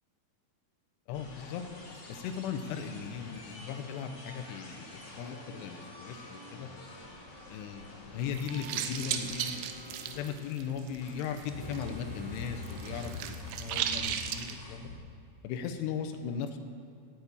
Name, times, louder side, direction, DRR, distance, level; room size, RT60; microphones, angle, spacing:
voice 1, 1.1-1.6 2.1-6.7 7.5-9.7 10.1-14.9 15.4-16.6, left 7 dB, 85° left, 6 dB, 2.7 m, -38 dB
sound 1, 1.1-15.0, left 2 dB, 55° left, 3.7 m, -47 dB
sound 2, 8.2-11.9 12.2-14.5, right 9 dB, 85° right, 2.2 m, -36 dB
Alarm, 8.7-10.4 11.6-13.4, left 1 dB, 65° right, 3.6 m, -51 dB
9.2 x 8.1 x 8.5 m, 2.4 s
omnidirectional pair, 5.1 m